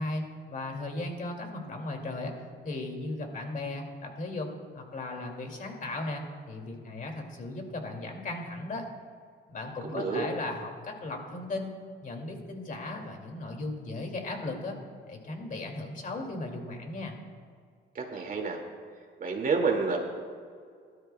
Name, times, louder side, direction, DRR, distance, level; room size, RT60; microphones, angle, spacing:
voice 1, 0.0-2.3 2.6-4.5 4.7-8.8 9.5-11.7 12.0-14.8 15.1-17.2, left 2 dB, 45° left, 2 dB, 2.4 m, -36 dB
voice 2, 9.9-10.2 18.0-18.6 19.2-20.0, right 4 dB, 45° right, 1 dB, 2.2 m, -28 dB
18.5 x 12.5 x 2.3 m, 2.2 s
cardioid pair, 90°, 20 cm